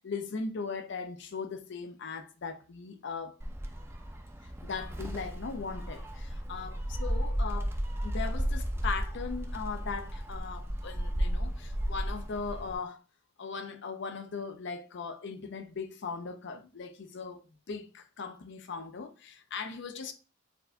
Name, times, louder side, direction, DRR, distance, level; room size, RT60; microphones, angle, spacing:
voice 1, 0.0-3.4 4.6-7.7 8.0-13.0 13.4-20.1, left 5 dB, 60° left, 0.6 m, -39 dB
Gull seagull, 3.4-12.8, equal, 10° right, 0.5 m, -34 dB
6.7 x 2.6 x 2.2 m
head